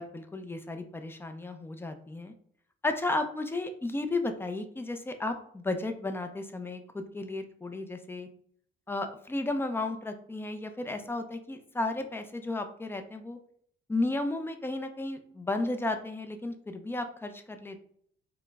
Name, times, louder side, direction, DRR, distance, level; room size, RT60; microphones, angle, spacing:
voice 1, 0.0-2.3 2.8-8.3 8.9-13.4 13.9-17.8, left 2 dB, 10° left, 7 dB, 0.3 m, -33 dB
4.3 x 2.0 x 2.3 m, 0.64 s
cardioid pair, 90°, 20 cm